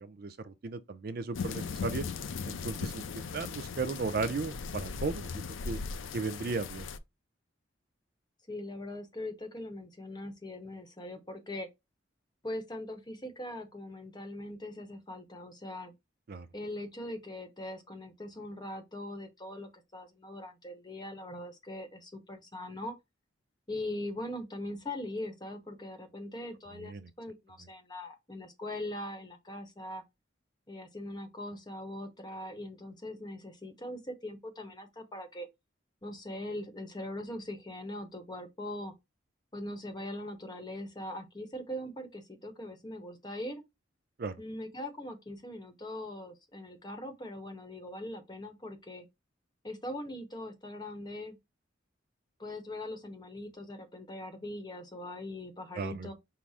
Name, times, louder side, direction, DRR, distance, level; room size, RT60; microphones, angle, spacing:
voice 1, 0.0-2.0 2.5-5.8 6.1-6.8 16.3-16.5 26.7-27.1 44.2-44.3 55.7-56.1, right 4 dB, 50° right, 0.5 m, -36 dB
sound 1, 1.3-7.0, left 5 dB, 85° left, 0.5 m, -38 dB
voice 2, 8.5-11.7 12.4-15.9 16.5-22.9 23.7-30.0 30.7-35.5 36.0-38.9 39.5-43.6 44.4-49.1 49.6-51.4 52.4-56.1, left 1 dB, 20° left, 0.9 m, -41 dB
5.6 x 2.0 x 4.7 m
head